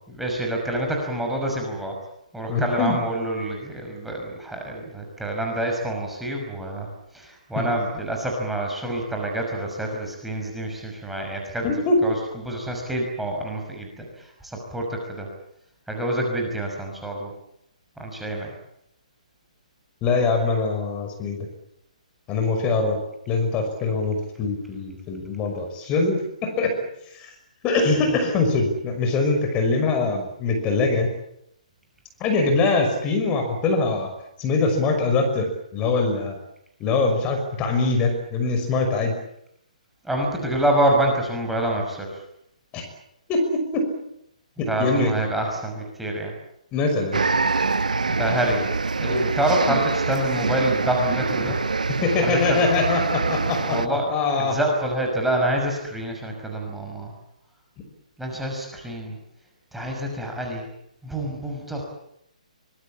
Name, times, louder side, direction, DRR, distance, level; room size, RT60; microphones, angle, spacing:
voice 1, 0.1-1.9 2.3-6.9 7.1-11.7 12.0-12.1 12.4-14.0 14.4-15.3 15.9-17.3 18.0-18.5 40.1-42.1 44.7-46.3 48.1-48.7 49.0-51.6 52.2-52.6 53.7-54.1 54.4-57.1 58.2-59.2 59.7-60.7 61.0-61.8, right 1 dB, 5° right, 0 dB, 5.9 m, -26 dB
voice 2, 2.5-3.0 7.6-7.7 11.6-12.0 20.0-21.5 22.3-23.0 23.3-27.3 27.6-31.1 32.2-34.1 34.4-36.4 36.8-39.1 42.7-42.9 43.3-43.9 44.6-45.1 46.7-47.2 51.4-51.5 52.0-54.6, left 3 dB, 25° left, 5 dB, 5.8 m, -23 dB
sound 1, 47.1-53.9, right 4 dB, 80° right, 1.2 m, -25 dB
24.5 x 21.5 x 8.7 m, 0.76 s
figure-of-eight pair, 135°, 4 cm